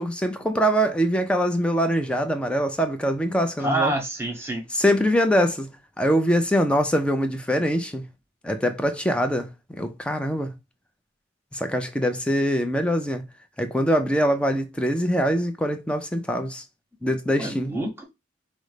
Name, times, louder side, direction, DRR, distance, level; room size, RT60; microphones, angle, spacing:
voice 1, 0.0-3.9 4.7-5.7 6.0-8.1 8.4-10.5 11.5-13.2 13.6-16.6 17.0-17.7, equal, 5° left, 0.5 m, -23 dB
voice 2, 3.6-4.6 17.4-18.0, right 1 dB, 15° right, 1.0 m, -27 dB
5.2 x 2.1 x 4.8 m
head